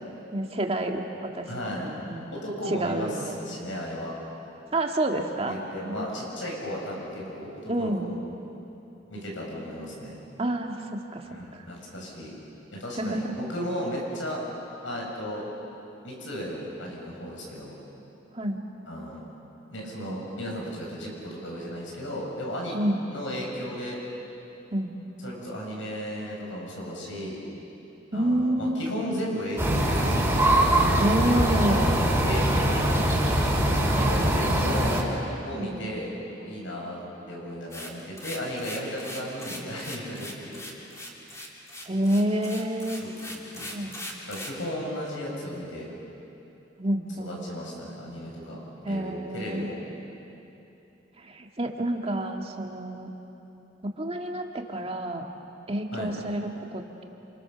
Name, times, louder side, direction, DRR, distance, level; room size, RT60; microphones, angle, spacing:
voice 1, 0.3-1.5 1.8-2.4 2.7-3.4 4.7-5.5 5.8-6.0 7.7-8.1 10.4-11.3 11.5-11.6 13.0-13.2 18.3-18.6 22.7-23.0 24.7-24.9 28.1-29.3 31.0-32.3 35.6-35.9 41.9-43.0 43.7-44.0 46.8-47.4 48.8-49.7 51.2-53.1 54.0-55.3 55.7-57.0, right 1 dB, 30° right, 2 dB, 1.9 m, -29 dB
voice 2, 1.5-1.9 2.3-4.1 5.5-8.2 9.1-10.2 11.3-12.4 12.7-14.4 14.8-15.5 16.0-17.7 18.9-19.2 19.7-22.8 23.1-24.0 25.2-27.4 28.1-30.7 32.2-35.0 35.4-36.1 36.4-37.0 37.3-40.6 43.0-43.7 44.3-45.9 47.2-48.6 48.9-49.8 55.9-56.1, equal, 85° left, -2 dB, 7.6 m, -35 dB
sound 1, 29.6-35.0, right 1 dB, 10° right, 4.1 m, -22 dB
sound 2, 37.7-44.6, left 1 dB, 15° left, 3.1 m, -39 dB
28.5 x 28.0 x 7.0 m, 3.0 s
head